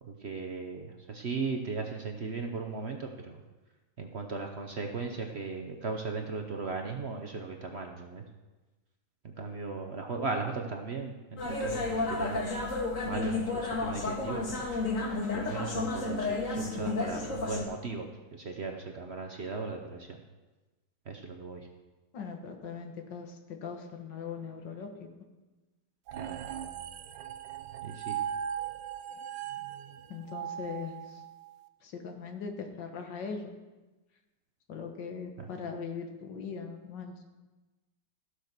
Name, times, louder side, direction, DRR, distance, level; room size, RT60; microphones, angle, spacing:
voice 1, 0.0-3.4 4.0-8.2 9.2-12.6 13.0-14.7 15.3-20.2 21.1-21.7 26.2-26.4 27.8-28.2 35.4-35.5, right 4 dB, 45° right, 4 dB, 0.9 m, -37 dB
sound 1, 11.4-17.6, left 3 dB, 45° left, 1.9 m, -32 dB
voice 2, 22.1-24.9 30.1-31.2 31.8-33.5 34.7-37.1, left 5 dB, 80° left, 4 dB, 2.0 m, -40 dB
sound 2, 26.1-31.5, right 9 dB, 85° right, 1.4 m, -38 dB
15.0 x 6.5 x 6.0 m, 1.2 s
omnidirectional pair, 1.9 m